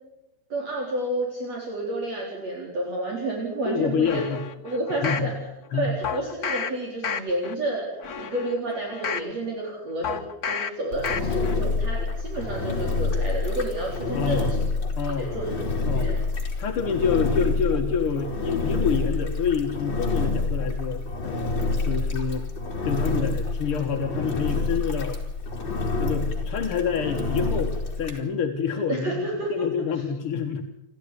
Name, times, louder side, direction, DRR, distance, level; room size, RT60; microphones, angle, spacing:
voice 1, 0.5-4.2 4.6-5.3 5.7-14.7 15.2-15.5 15.8-16.2 28.9-29.5, right 1 dB, 50° right, -2 dB, 5.1 m, -30 dB
voice 2, 3.7-4.4 4.9-5.3 5.7-5.9 14.1-14.6 15.0-15.4 15.8-16.2 16.6-22.5 22.8-25.2 26.0-30.6, left 6 dB, 50° left, 3 dB, 1.9 m, -27 dB
sound 1, 4.0-5.3 6.0-6.7 7.0-7.5 8.0-9.3 10.0-10.7 11.0-11.5 11.9-12.0, left 6 dB, 80° left, 0.8 m, -31 dB
Engine, 10.9-28.2, left 3 dB, 35° left, 4.1 m, -27 dB
29.0 x 12.5 x 9.8 m, 0.91 s
omnidirectional pair, 4.0 m